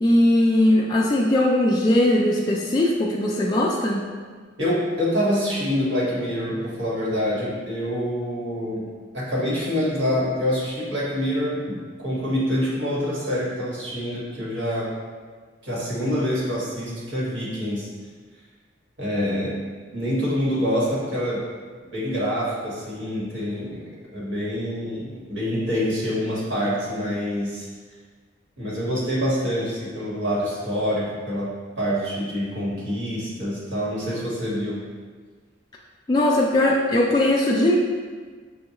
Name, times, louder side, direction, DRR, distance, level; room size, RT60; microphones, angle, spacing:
voice 1, 0.0-4.0 36.1-37.8, left 1 dB, 20° left, -4 dB, 0.3 m, -19 dB
voice 2, 4.6-8.8 9.1-14.9 15.6-17.9 19.0-19.5 19.9-21.4 21.9-23.8 24.1-27.7 28.6-34.8, equal, 70° right, -7 dB, 1.5 m, -26 dB
6.2 x 2.3 x 2.9 m, 1.5 s
head